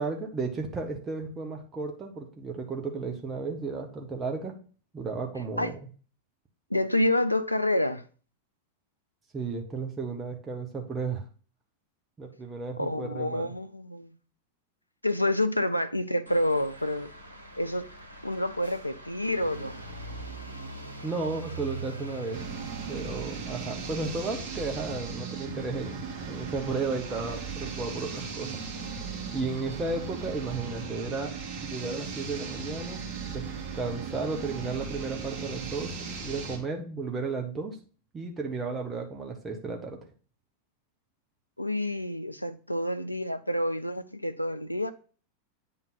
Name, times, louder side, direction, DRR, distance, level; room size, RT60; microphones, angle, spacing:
voice 1, 0.0-4.5 4.9-5.7 9.3-11.2 12.2-13.5 21.0-22.4 22.9-26.0 26.3-29.0 29.3-31.3 31.6-33.0 33.3-33.4 33.7-37.8 38.1-40.0, right 4 dB, 20° right, 1.3 m, -34 dB
voice 2, 6.7-8.0 12.8-14.1 15.0-17.1 17.5-17.9 18.2-19.7 41.6-44.9, left 1 dB, 85° left, 0.5 m, -28 dB
sound 1, 16.3-33.2, right 2 dB, 85° right, 1.1 m, -45 dB
sound 2, 22.3-36.6, right 5 dB, 40° right, 2.2 m, -37 dB
8.9 x 3.8 x 4.1 m
figure-of-eight pair, 90°, 0 cm